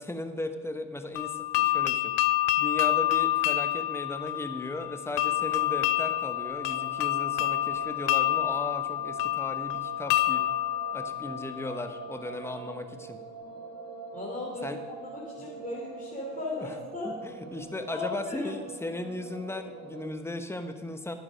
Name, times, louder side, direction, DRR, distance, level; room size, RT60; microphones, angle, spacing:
voice 1, 0.0-2.2 2.6-10.5 10.9-13.2 14.6-14.8 16.5-16.7 17.0-21.1, left 2 dB, 5° left, 8 dB, 1.1 m, -36 dB
sound 1, 1.2-12.0, left 15 dB, 65° left, 0.5 m, -28 dB
sound 2, 5.0-20.1, right 4 dB, 45° right, 1.5 m, -44 dB
voice 2, 14.1-17.1 17.9-18.5, left 3 dB, 20° left, -5 dB, 3.4 m, -36 dB
11.0 x 9.9 x 5.2 m, 1.6 s
hypercardioid pair, 85°, 35 cm